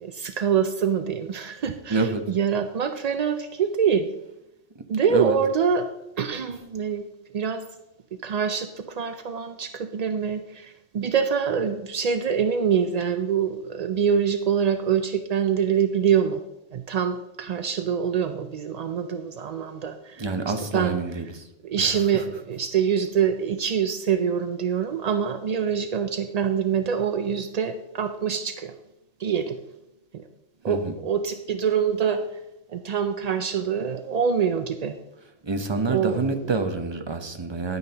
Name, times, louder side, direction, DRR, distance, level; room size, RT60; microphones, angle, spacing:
voice 1, 0.0-4.1 4.9-5.9 6.2-7.1 7.3-7.6 8.2-16.4 16.7-20.2 20.7-21.0 21.6-28.7 29.2-29.6 30.1-30.2 30.6-32.2 32.7-35.0 35.9-36.2, right 7 dB, 70° right, 8 dB, 0.3 m, -25 dB
voice 2, 1.9-2.2 5.1-5.4 20.2-21.4 21.8-21.9 30.7-30.9 35.4-37.8, right 4 dB, 30° right, 6 dB, 0.6 m, -27 dB
11.0 x 9.4 x 2.9 m, 0.90 s
omnidirectional pair, 1.2 m